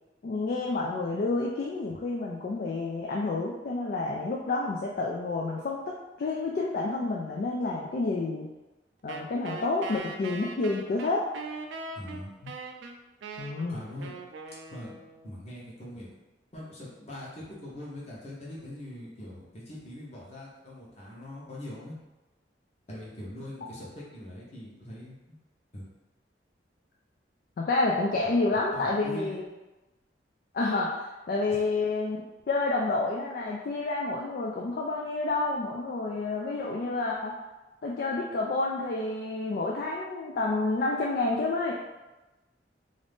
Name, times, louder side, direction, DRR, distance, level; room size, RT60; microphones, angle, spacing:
voice 1, 0.2-8.5 9.0-11.2 13.4-13.8 27.6-29.4 30.5-30.9 31.3-37.3 37.8-41.7, left 3 dB, 50° left, -3 dB, 0.3 m, -29 dB
Wind instrument woodwind instrument, 9.1-15.4, right 3 dB, 85° right, 0.3 m, -41 dB
voice 2, 11.9-12.3 13.7-14.1 14.7-15.0 15.2-16.1 16.5-22.0 22.9-25.4 25.7-25.8 28.1-28.3 28.7-29.4 31.5-31.6, left 1 dB, 35° left, -6 dB, 0.9 m, -42 dB
2.5 x 2.5 x 3.4 m, 1.1 s
head